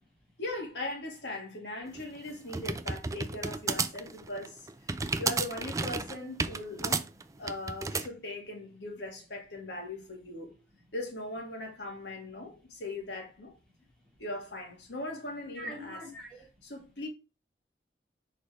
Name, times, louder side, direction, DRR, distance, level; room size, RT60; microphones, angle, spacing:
voice 1, 0.4-4.6 5.2-7.1 7.4-10.6 10.9-13.5 14.2-16.0 16.6-17.1, left 2 dB, 80° left, 2.2 m, -39 dB
sound 1, 1.9-8.1, right 4 dB, 20° right, 0.4 m, -32 dB
voice 2, 15.5-16.4, equal, 5° left, 2.4 m, -42 dB
6.6 x 4.8 x 3.5 m
head